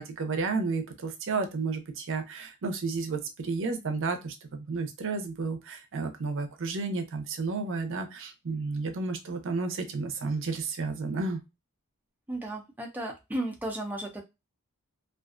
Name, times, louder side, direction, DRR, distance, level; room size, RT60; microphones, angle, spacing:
voice 1, 0.0-11.4, right 4 dB, 60° right, 6 dB, 0.6 m, -32 dB
voice 2, 12.3-14.2, right 1 dB, 10° right, 0 dB, 0.4 m, -34 dB
2.4 x 2.2 x 2.4 m, 0.24 s
head